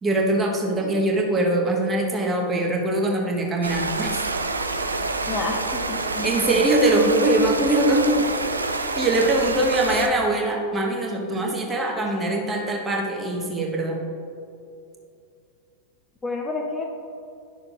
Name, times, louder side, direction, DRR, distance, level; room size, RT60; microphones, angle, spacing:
voice 1, 0.0-4.2 6.2-8.2 8.9-14.0, right 1 dB, 15° right, -1 dB, 1.2 m, -22 dB
sound 1, 3.6-10.1, right 3 dB, 80° right, 0.4 m, -27 dB
voice 2, 5.3-6.6 16.2-16.9, left 3 dB, 15° left, 1 dB, 0.6 m, -30 dB
10.5 x 6.4 x 2.5 m, 2.6 s
figure-of-eight pair, 90°, 0 cm